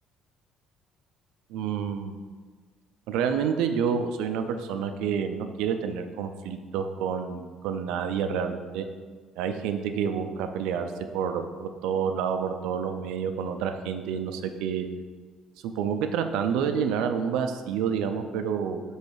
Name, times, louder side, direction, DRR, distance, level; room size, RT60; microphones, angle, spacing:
voice 1, 1.5-2.2 3.1-8.8 9.4-14.9 15.6-18.8, right 7 dB, 85° right, 7 dB, 0.5 m, -29 dB
5.4 x 4.1 x 4.7 m, 1.5 s
cardioid pair, 170°, 0 cm